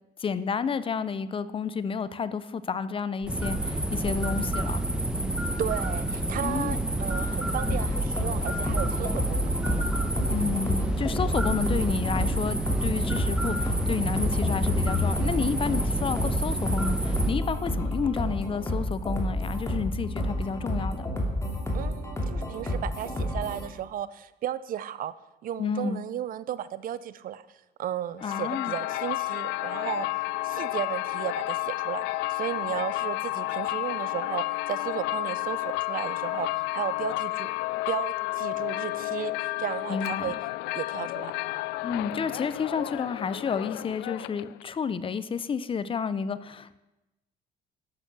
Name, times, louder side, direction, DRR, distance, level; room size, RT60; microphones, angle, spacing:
voice 1, 0.2-4.8 6.4-6.8 10.3-21.1 25.6-26.0 28.2-28.7 39.9-40.3 41.8-46.8, left 6 dB, 30° left, 14 dB, 0.6 m, -30 dB
sound 1, 3.2-17.3, right 1 dB, 5° right, 1.3 m, -29 dB
voice 2, 5.6-9.5 21.7-25.1 25.4-27.4 27.8-30.1 30.4-36.5 36.7-37.5 37.9-40.4 40.7-41.3, right 11 dB, 55° right, 16 dB, 0.6 m, -34 dB
sound 2, 7.7-23.7, left 1 dB, 15° left, 2.6 m, -30 dB
sound 3, 28.2-44.6, left 19 dB, 90° left, 0.4 m, -31 dB
12.5 x 8.1 x 6.1 m, 0.99 s
cardioid pair, 110°, 17 cm